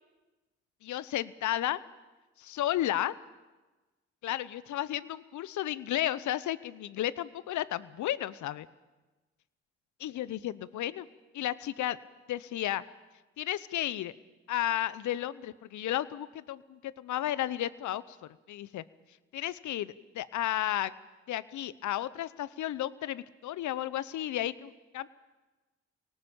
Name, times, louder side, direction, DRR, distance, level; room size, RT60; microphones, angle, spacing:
voice 1, 0.8-1.8 2.4-3.1 4.2-8.7 10.0-11.1 11.3-12.0 12.3-12.8 13.4-14.1 14.5-18.2 18.5-18.8 19.3-20.9 21.3-25.1, left 13 dB, 75° left, 18 dB, 0.9 m, -33 dB
23.5 x 18.5 x 8.8 m, 1.2 s
hypercardioid pair, 40°, 29 cm